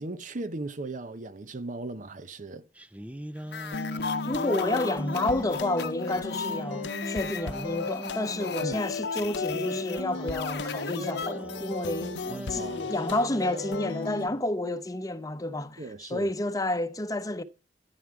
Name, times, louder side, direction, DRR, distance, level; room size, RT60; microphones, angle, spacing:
voice 1, 0.0-2.6 8.6-8.8 12.3-12.9 15.8-16.3, right 2 dB, 45° right, 0.8 m, -37 dB
sound 1, 2.7-8.5 9.3-14.4, equal, 10° right, 0.6 m, -40 dB
sound 2, 3.4-11.7, left 5 dB, 70° left, 1.0 m, -38 dB
sound 3, 3.7-14.3, left 4 dB, 90° left, 0.6 m, -35 dB
voice 2, 4.3-17.4, left 1 dB, 20° left, 0.9 m, -30 dB
13.0 x 11.0 x 4.7 m
head